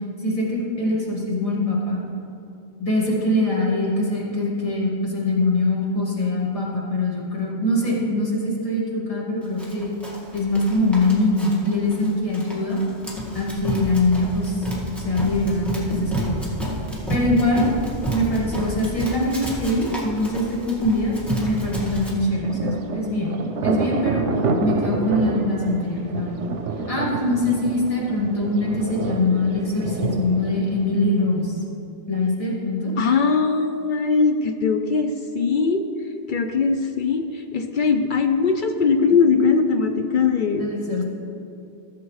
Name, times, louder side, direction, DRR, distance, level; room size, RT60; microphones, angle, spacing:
voice 1, 0.2-2.0 2.8-9.9 10.3-12.8 13.3-16.4 17.1-17.7 18.1-23.4 23.6-24.3 24.6-26.5 26.9-31.5 32.1-32.9 40.5-41.0, left 2 dB, 30° left, -4 dB, 1.8 m, -23 dB
Run, 9.6-22.1, equal, ahead, 1.7 m, -30 dB
Thunder, 22.0-31.5, right 3 dB, 85° right, 1.0 m, -28 dB
voice 2, 33.0-35.8 36.3-40.7, left 5 dB, 60° left, 6 dB, 0.5 m, -20 dB
15.0 x 7.3 x 3.1 m, 2.8 s
omnidirectional pair, 1.2 m